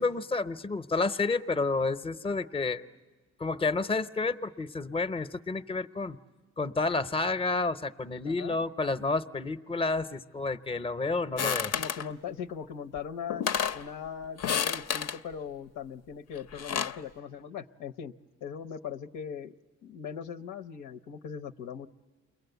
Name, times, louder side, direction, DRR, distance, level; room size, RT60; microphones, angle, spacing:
voice 1, 0.0-2.8 3.4-6.2 6.6-11.7, left 3 dB, 20° left, 12 dB, 0.7 m, -30 dB
voice 2, 8.2-8.6 11.7-13.4 13.7-18.1 18.4-19.5 19.8-21.9, left 7 dB, 85° left, 7 dB, 0.9 m, -40 dB
sound 1, 11.4-12.1 13.0-13.1 13.3-13.8 14.4-15.2 16.4-17.0, left 8 dB, 60° left, 0.7 m, -30 dB
29.0 x 22.0 x 8.0 m, 1.4 s
cardioid pair, 90°, 30 cm